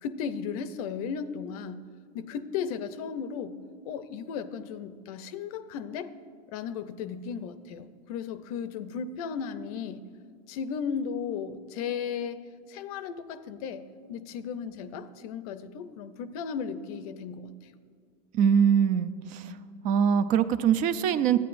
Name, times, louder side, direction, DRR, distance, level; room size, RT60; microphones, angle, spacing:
voice 1, 0.0-1.9 2.1-3.6 3.8-6.1 6.5-10.0 10.5-12.4 12.7-17.7, left 6 dB, 70° left, 12 dB, 0.6 m, -35 dB
voice 2, 18.3-19.5 19.8-21.4, right 8 dB, 45° right, 11 dB, 0.4 m, -23 dB
13.0 x 9.2 x 2.6 m, 2.1 s
supercardioid pair, 130°, 20 cm